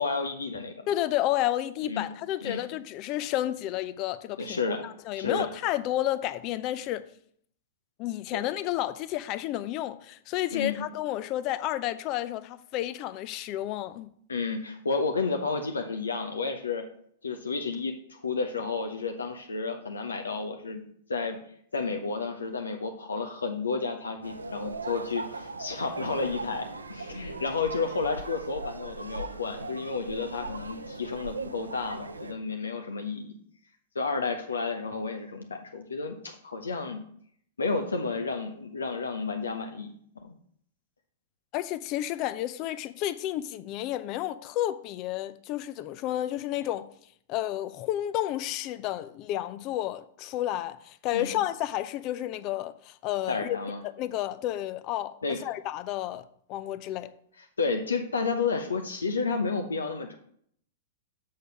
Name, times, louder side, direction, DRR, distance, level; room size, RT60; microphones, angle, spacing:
voice 1, 0.0-0.7 1.9-2.0 2.4-2.6 4.4-4.9 5.1-5.5 8.3-8.4 10.5-10.8 14.3-16.8 17.2-20.8 21.1-21.4 21.7-33.3 33.9-37.0 37.6-39.9 40.2-40.3 51.1-51.4 53.3-53.8 55.2-55.4 57.6-60.1, left 4 dB, 80° left, 0.8 m, -31 dB
voice 2, 0.9-7.1 8.0-14.1 41.5-46.9 47.3-53.6 53.8-55.2 55.4-56.2 56.5-57.1, left 13 dB, 40° left, 0.6 m, -31 dB
sound 1, 24.2-32.3, right 3 dB, 85° right, 0.6 m, -39 dB
6.6 x 6.5 x 5.6 m
figure-of-eight pair, 105°, 0 cm